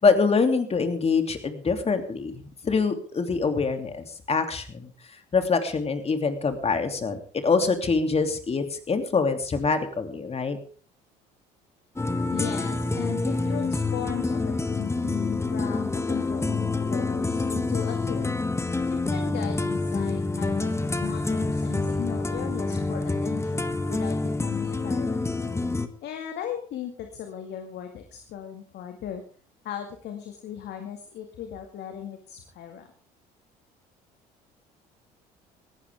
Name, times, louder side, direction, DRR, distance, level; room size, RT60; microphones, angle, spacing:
voice 1, 0.0-4.9 5.3-10.6, left 4 dB, 35° left, 6 dB, 2.9 m, -25 dB
sound 1, 12.0-25.9, left 3 dB, 15° left, 1.5 m, -27 dB
voice 2, 12.3-18.3 19.1-25.3 26.0-29.2 29.6-32.9, left 9 dB, 60° left, 5 dB, 2.2 m, -37 dB
19.0 x 15.0 x 3.6 m, 0.43 s
hypercardioid pair, 70°, 19 cm